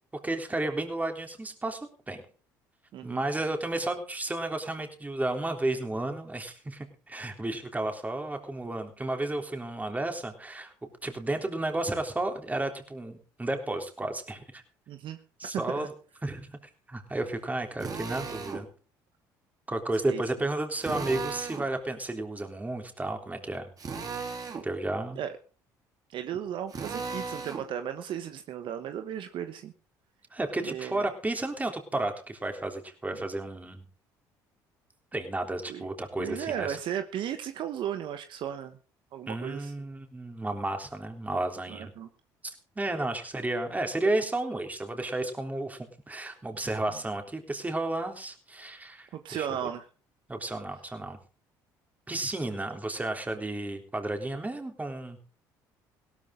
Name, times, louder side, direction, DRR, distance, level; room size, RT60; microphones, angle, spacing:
voice 1, 0.2-1.8 2.1-2.2 3.0-14.6 15.4-15.9 16.2-16.6 16.9-18.7 19.7-23.7 24.6-25.2 30.3-33.8 35.1-36.8 39.3-41.9 42.4-49.5 50.3-51.2 52.1-55.2, right 2 dB, 15° right, 5 dB, 3.6 m, -32 dB
voice 2, 14.9-15.5 15.7-15.9 20.1-20.2 25.2-25.4 26.1-29.7 30.6-31.0 35.7-35.8 36.2-38.8 39.1-39.7 41.7-42.1 49.1-49.9, right 9 dB, 60° right, 8 dB, 1.2 m, -35 dB
Drill, 17.8-18.6 20.8-21.7 23.8-24.7 26.7-27.7, right 5 dB, 40° right, 3.5 m, -36 dB
17.0 x 12.5 x 3.8 m, 0.38 s
hypercardioid pair, 70°, 9 cm